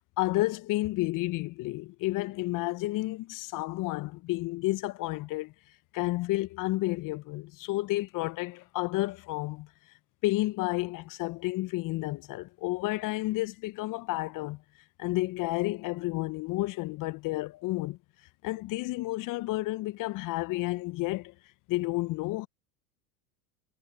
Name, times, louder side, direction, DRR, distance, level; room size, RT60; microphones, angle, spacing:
voice 1, 0.2-5.5 5.9-9.7 10.2-14.6 15.0-18.0 18.4-21.3 21.7-22.5, left 19 dB, 40° left, 1.3 m, -31 dB
hypercardioid pair, 85°, 46 cm